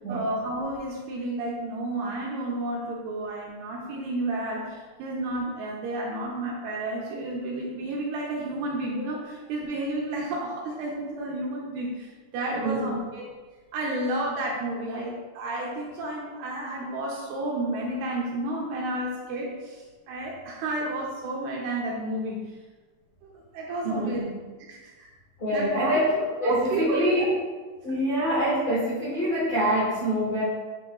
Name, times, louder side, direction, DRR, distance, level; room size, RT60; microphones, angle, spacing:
voice 1, 0.1-13.2 13.7-22.4 23.2-24.2 24.7-25.1 25.5-27.3, right 1 dB, 80° right, -3 dB, 2.4 m, -31 dB
voice 2, 12.5-13.0 23.8-24.3 25.4-26.1 26.4-27.3 27.8-30.4, equal, 60° left, -11 dB, 1.3 m, -25 dB
9.0 x 3.7 x 3.8 m, 1.3 s
omnidirectional pair, 5.3 m